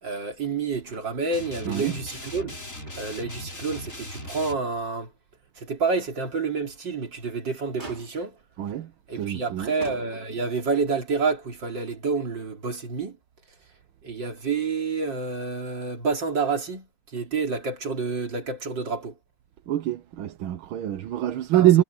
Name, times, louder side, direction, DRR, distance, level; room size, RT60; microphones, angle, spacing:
voice 1, 0.0-2.6 3.0-5.1 5.6-8.4 9.1-13.2 14.0-19.2 21.5-21.7, right 4 dB, 60° right, 3.9 m, -29 dB
Motor vehicle (road), 0.8-1.5 1.8-1.9 2.4-3.3 3.8-3.9 4.4-4.5 6.8-7.2 7.8-8.5 9.2-9.4 9.8-10.6 11.7-11.8, right 3 dB, 20° right, 3.4 m, -45 dB
sound 1, 1.3-4.6, left 1 dB, 35° left, 6.2 m, -39 dB
voice 2, 8.6-8.9 9.2-9.7 19.7-21.8, right 13 dB, 85° right, 1.8 m, -24 dB
omnidirectional pair, 2.2 m